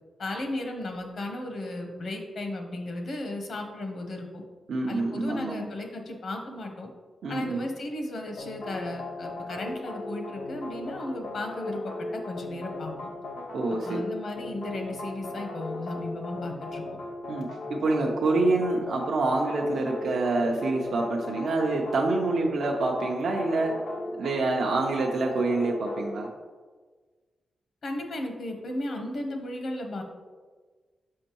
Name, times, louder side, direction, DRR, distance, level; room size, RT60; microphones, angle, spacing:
voice 1, 0.2-4.4 4.9-6.9 7.3-12.9 13.8-16.8 27.8-30.0, left 1 dB, 55° left, 3 dB, 0.9 m, -35 dB
voice 2, 4.7-5.7 7.2-7.6 13.5-14.0 17.3-23.7 24.2-26.3, right 3 dB, 75° right, -1 dB, 0.6 m, -26 dB
sound 1, 8.4-26.3, left 2 dB, 90° left, 0.6 m, -37 dB
6.5 x 5.2 x 2.9 m, 1.4 s
wide cardioid pair, 160°, 0 cm